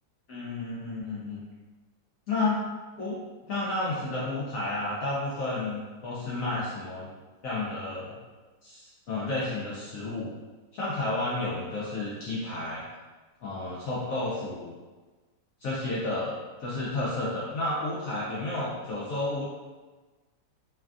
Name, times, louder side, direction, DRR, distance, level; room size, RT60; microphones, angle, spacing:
voice 1, 0.3-1.4 2.3-2.6 3.0-3.2 3.5-7.1 7.4-8.2 8.6-10.3 10.7-12.8 13.4-14.7 15.6-19.5, left 2 dB, 75° left, -7 dB, 0.7 m, -31 dB
3.2 x 2.3 x 2.4 m, 1.3 s
omnidirectional pair, 2.1 m